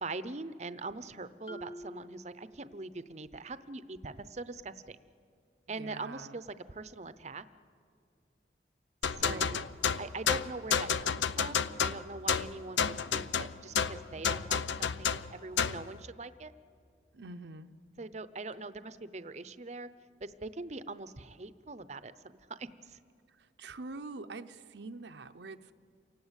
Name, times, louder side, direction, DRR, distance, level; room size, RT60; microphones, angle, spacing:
voice 1, 0.0-5.0 5.7-7.4 9.0-9.6 10.0-16.5 18.0-19.9 20.2-23.0, right 3 dB, 40° right, 14 dB, 0.7 m, -42 dB
Marimba xylophone, 1.5-3.2, right 1 dB, 30° left, 0.8 m, -48 dB
voice 2, 5.7-6.4 9.2-9.7 17.1-17.7 23.4-25.7, right 3 dB, 75° right, 8 dB, 0.7 m, -45 dB
sound 1, 9.0-15.9, left 7 dB, 85° left, 0.6 m, -31 dB
28.5 x 18.5 x 8.2 m, 2.3 s
head